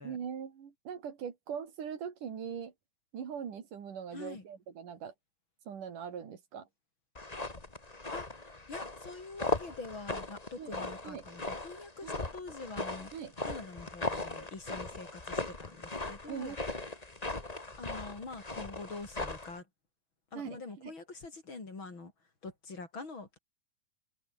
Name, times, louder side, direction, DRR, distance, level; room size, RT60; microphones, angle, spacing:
voice 1, 0.0-2.7 3.1-5.1 5.7-6.7 10.6-10.8 11.0-11.3 12.0-12.2 13.1-13.3 16.3-16.6 20.4-20.9, right 7 dB, 85° right, 4.5 m, -41 dB
voice 2, 4.1-4.4 8.1-13.1 13.4-16.6 17.0-17.2 17.8-19.7 20.3-22.1 22.4-23.4, left 3 dB, 40° left, 4.7 m, -45 dB
sound 1, 7.1-19.6, left 2 dB, 15° left, 1.8 m, -38 dB
open air
omnidirectional pair, 3.6 m